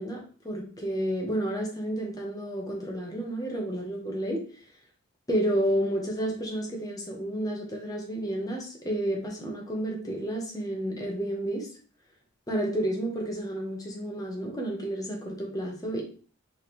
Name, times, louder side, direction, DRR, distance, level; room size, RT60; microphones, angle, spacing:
voice 1, 0.0-4.5 5.3-11.7 12.5-16.0, right 1 dB, 15° left, -1 dB, 1.1 m, -31 dB
4.3 x 3.6 x 3.2 m, 0.41 s
head